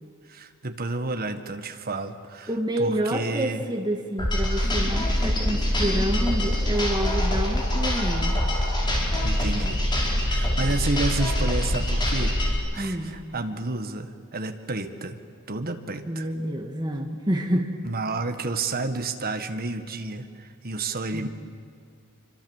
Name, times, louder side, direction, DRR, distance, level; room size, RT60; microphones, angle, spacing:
voice 1, 0.3-2.5 2.8-3.6 9.2-9.8 10.2-15.2 15.5-16.3 17.8-21.3, right 3 dB, 45° right, 7 dB, 1.7 m, -30 dB
voice 2, 2.5-8.4 12.7-13.2 16.1-17.8 21.1-21.3, right 1 dB, 20° right, 2 dB, 1.8 m, -28 dB
sound 1, 4.2-12.5, left 1 dB, 20° left, 5.2 m, -24 dB
26.5 x 24.5 x 7.4 m, 2.3 s
head